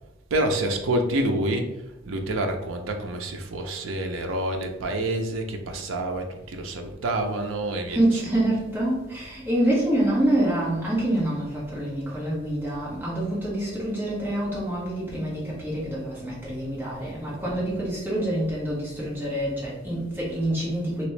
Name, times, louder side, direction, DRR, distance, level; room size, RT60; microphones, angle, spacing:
voice 1, 0.3-1.7 2.1-8.3, right 1 dB, 80° right, 0.5 m, -27 dB
voice 2, 7.9-21.1, right 1 dB, 10° right, 1.1 m, -26 dB
3.0 x 2.9 x 3.2 m
head